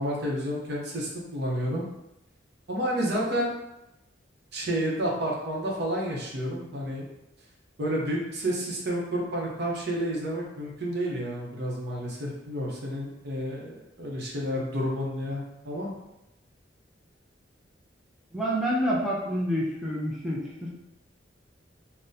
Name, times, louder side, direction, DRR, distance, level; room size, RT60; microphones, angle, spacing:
voice 1, 0.0-1.8 2.7-3.5 4.5-7.1 7.8-15.9, equal, 60° right, -3 dB, 0.7 m, -30 dB
voice 2, 18.3-20.7, equal, ahead, -6 dB, 0.5 m, -28 dB
3.9 x 2.1 x 2.6 m, 0.90 s
head